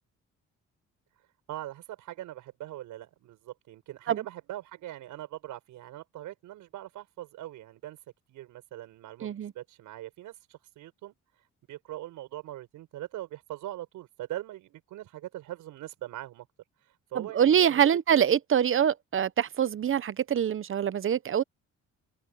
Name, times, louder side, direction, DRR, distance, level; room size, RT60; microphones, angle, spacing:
voice 1, 1.5-8.0 8.3-11.2 11.7-16.5 16.8-17.8 18.1-18.2, right 14 dB, 90° right, 6.6 m, -41 dB
voice 2, 9.2-9.5 17.1-21.4, right 9 dB, 45° right, 0.9 m, -24 dB
cardioid pair, 90°, 30 cm